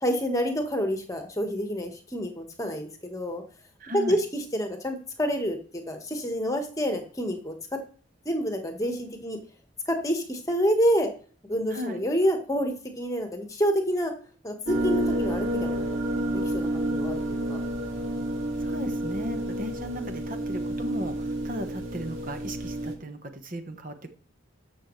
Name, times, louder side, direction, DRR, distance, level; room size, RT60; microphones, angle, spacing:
voice 1, 0.0-3.4 3.9-7.8 8.2-9.4 9.9-11.1 11.5-14.1 14.4-17.6, equal, 15° left, 5 dB, 1.4 m, -28 dB
voice 2, 3.8-4.2 11.7-12.0 18.6-24.1, equal, 45° right, 7 dB, 1.0 m, -36 dB
sound 1, 14.7-22.9, right 1 dB, 80° right, 2.1 m, -30 dB
13.5 x 6.3 x 3.2 m, 0.42 s
head